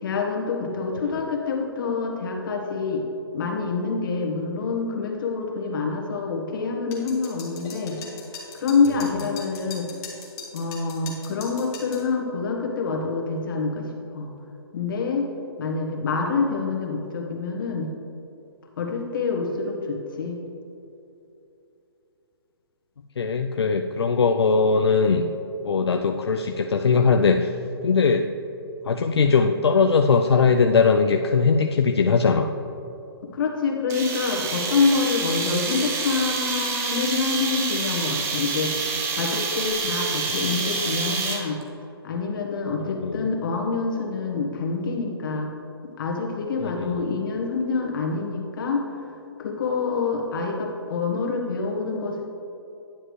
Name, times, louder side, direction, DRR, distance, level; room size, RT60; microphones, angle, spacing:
voice 1, 0.0-3.0 3.3-8.0 8.5-9.9 10.5-14.3 14.7-15.3 15.6-17.9 18.8-20.4 33.2-38.7 39.1-41.6 42.0-45.5 46.0-48.9 49.4-52.2, left 4 dB, 55° left, 0 dB, 1.5 m, -26 dB
sound 1, 6.9-12.1, left 5 dB, 25° left, 1.6 m, -40 dB
voice 2, 23.2-25.2 25.6-27.5 27.8-28.3 28.9-32.5 42.8-43.3 46.6-47.0, left 5 dB, 85° left, 5 dB, 0.4 m, -20 dB
sound 2, 33.9-41.6, right 4 dB, 20° right, 0.9 m, -28 dB
9.9 x 7.7 x 3.2 m, 2.8 s
hypercardioid pair, 135°, 13 cm